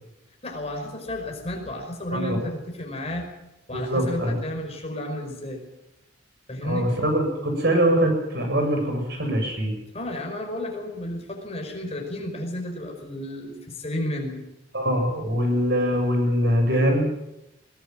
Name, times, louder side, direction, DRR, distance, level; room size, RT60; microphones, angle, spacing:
voice 1, 0.4-3.3 3.7-5.6 6.5-6.9 9.9-14.4, left 1 dB, 30° left, 2 dB, 5.3 m, -32 dB
voice 2, 3.7-4.4 6.6-9.7 14.7-17.1, equal, 55° right, 3 dB, 7.3 m, -23 dB
21.5 x 18.0 x 7.6 m, 0.90 s
head